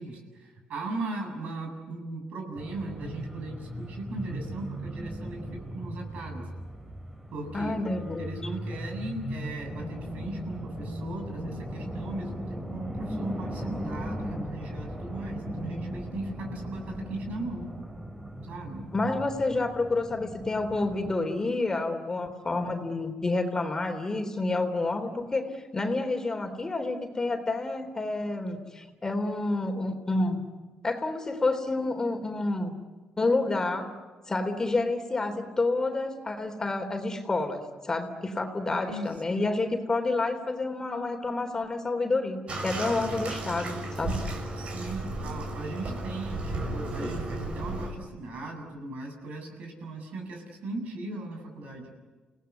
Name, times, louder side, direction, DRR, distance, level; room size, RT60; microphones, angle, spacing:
voice 1, 0.0-6.5 7.3-7.7 8.2-17.7 18.5-18.9 38.7-39.5 44.6-51.9, right 2 dB, 70° right, 3 dB, 7.7 m, -38 dB
sound 1, 2.6-21.2, equal, 15° right, 4.5 m, -38 dB
voice 2, 7.5-8.4 18.9-30.4 30.8-32.7 33.2-33.9 34.3-44.2, left 2 dB, 25° left, 5 dB, 3.6 m, -29 dB
Bathtub (filling or washing), 42.5-47.9, right 2 dB, 50° right, 5.9 m, -34 dB
29.5 x 18.5 x 9.7 m, 1.3 s
cardioid pair, 90°, 3 cm